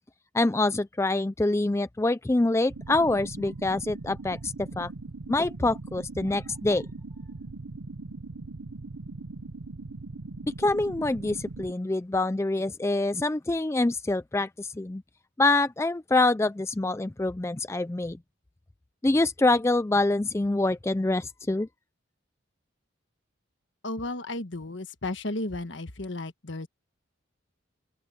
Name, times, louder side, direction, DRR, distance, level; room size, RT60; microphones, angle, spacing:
voice 1, 0.3-4.9 5.3-6.8 10.6-15.0 15.4-18.2 19.0-21.7, left 2 dB, 15° left, 0.3 m, -25 dB
sound 1, 2.7-11.7, right 3 dB, 90° right, 0.9 m, -40 dB
voice 2, 23.8-26.7, left 2 dB, 65° left, 1.4 m, -34 dB
open air
head